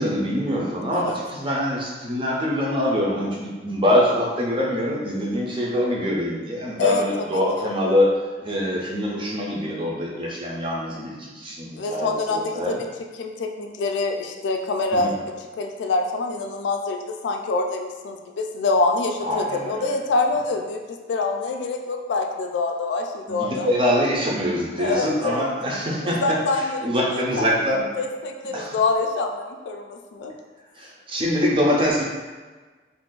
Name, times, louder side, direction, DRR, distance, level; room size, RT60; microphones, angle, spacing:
voice 1, 0.0-8.1 8.4-12.8 14.9-15.1 19.2-19.9 23.3-27.8 28.5-28.8 30.8-32.0, equal, 30° right, -3 dB, 0.5 m, -24 dB
voice 2, 7.3-7.7 11.7-12.8 13.2-15.2 15.6-23.7 24.8-25.4 26.0-26.8 27.1-27.5 28.0-30.3, left 3 dB, 90° left, 4 dB, 0.3 m, -25 dB
2.6 x 2.4 x 3.7 m, 1.3 s
head